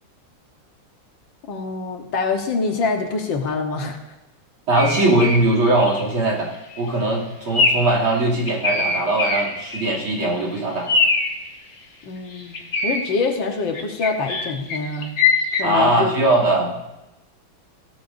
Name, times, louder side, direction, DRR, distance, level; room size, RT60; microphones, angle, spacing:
voice 1, 1.5-4.0 12.0-15.1 15.6-16.1, left 4 dB, 65° left, 3 dB, 1.9 m, -25 dB
voice 2, 4.7-11.0 15.6-16.8, right 2 dB, 75° right, -5 dB, 3.6 m, -20 dB
sound 1, 4.8-5.4 5.8-6.1 6.5-6.8 7.5-7.9 8.3-10.1 10.3-10.4 10.9-11.4 12.3-13.0 13.7-15.6, left 4 dB, 45° left, 1.5 m, -22 dB
17.0 x 13.0 x 2.6 m, 0.96 s
omnidirectional pair, 2.3 m